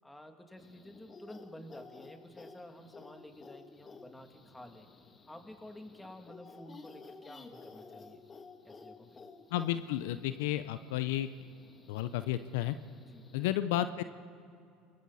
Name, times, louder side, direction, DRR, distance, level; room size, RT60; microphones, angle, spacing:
voice 1, 0.0-4.9 5.3-8.2 8.6-9.2 13.0-13.3, left 1 dB, 10° left, 4 dB, 2.5 m, -51 dB
sound 1, 0.6-13.5, left 4 dB, 30° left, 1.6 m, -54 dB
voice 2, 9.5-11.3 11.9-12.8 13.3-14.0, left 13 dB, 75° left, 12 dB, 0.6 m, -32 dB
29.0 x 22.0 x 4.2 m, 2.3 s
hypercardioid pair, 80°, 0 cm